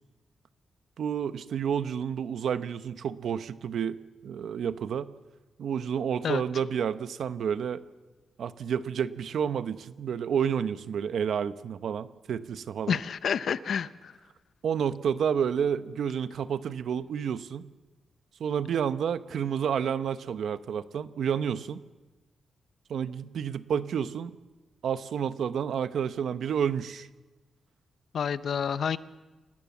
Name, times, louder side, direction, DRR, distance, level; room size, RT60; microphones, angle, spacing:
voice 1, 1.0-5.1 5.6-7.8 8.4-13.0 14.6-17.7 18.4-21.8 22.9-24.3 24.8-27.1, right 8 dB, 65° right, 12 dB, 1.0 m, -30 dB
voice 2, 12.9-14.2 28.1-29.0, left 7 dB, 55° left, 14 dB, 0.8 m, -29 dB
29.0 x 19.5 x 7.3 m, 1.2 s
wide cardioid pair, 165°, 0 cm